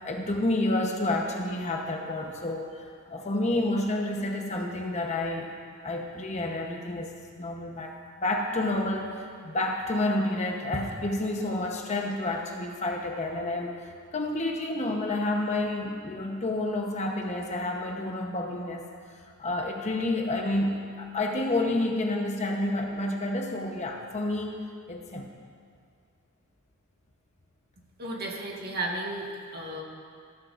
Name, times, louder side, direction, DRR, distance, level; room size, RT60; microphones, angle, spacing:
voice 1, 0.0-5.5 5.8-13.8 14.1-18.8 19.4-24.6 24.9-25.3, left 2 dB, 35° left, 1 dB, 0.9 m, -29 dB
voice 2, 28.0-29.8, right 2 dB, 45° right, -1 dB, 1.6 m, -34 dB
14.0 x 14.0 x 2.6 m, 2.1 s
head